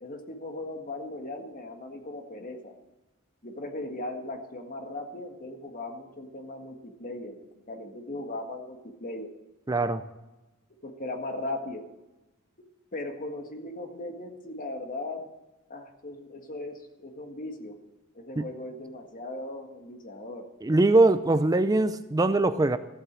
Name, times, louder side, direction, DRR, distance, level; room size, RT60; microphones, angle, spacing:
voice 1, 0.0-2.7 3.4-7.4 7.7-9.3 10.8-11.8 12.9-15.3 15.7-17.8 18.2-20.5, left 2 dB, 40° left, 4 dB, 1.7 m, -38 dB
voice 2, 9.7-10.0 18.4-18.5 20.6-22.8, right 2 dB, 15° right, 12 dB, 0.4 m, -22 dB
14.5 x 8.2 x 7.4 m, 1.0 s
head